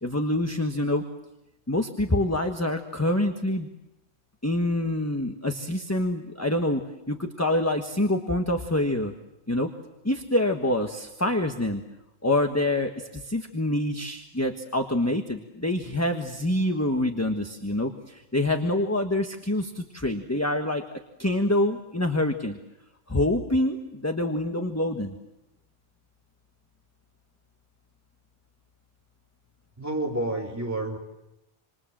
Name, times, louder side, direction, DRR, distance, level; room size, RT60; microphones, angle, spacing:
voice 1, 0.0-1.0 1.7-3.7 4.4-6.8 7.1-9.1 9.5-9.7 10.0-11.8 12.2-20.8 21.2-22.6 23.1-25.2, left 1 dB, 15° left, 5 dB, 1.4 m, -26 dB
voice 2, 29.8-31.0, right 2 dB, 15° right, -1 dB, 4.2 m, -29 dB
27.5 x 27.0 x 7.6 m, 0.92 s
omnidirectional pair, 1.1 m